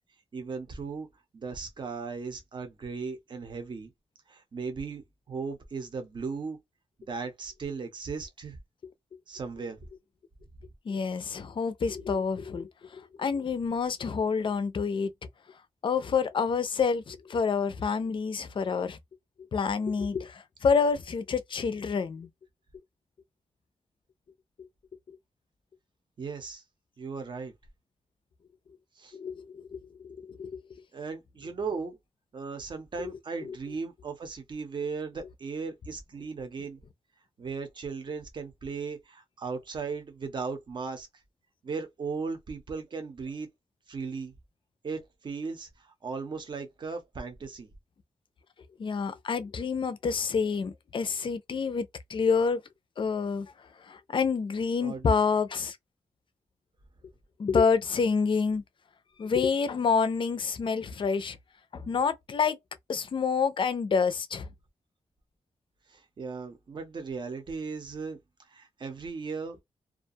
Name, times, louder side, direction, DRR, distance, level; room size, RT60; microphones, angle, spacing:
voice 1, 0.3-1.1 1.3-3.9 4.3-6.6 7.0-8.6 9.3-9.8 26.2-26.6 27.0-27.5 29.0-29.2 30.9-32.0 32.3-36.8 37.4-41.1 41.6-43.5 43.9-44.3 44.8-47.7 54.8-55.1 65.9-68.2 68.5-69.6, right 4 dB, 40° right, 0.7 m, -37 dB
voice 2, 10.9-15.1 15.8-19.0 19.5-22.3 24.6-24.7 29.1-30.6 33.0-33.1 33.5-33.6 48.8-52.6 53.0-53.5 53.9-55.8 57.4-58.6 59.2-61.4 61.7-62.6 62.9-64.5, left 5 dB, 45° left, 0.4 m, -28 dB
2.4 x 2.2 x 2.6 m
wide cardioid pair, 165°, 12 cm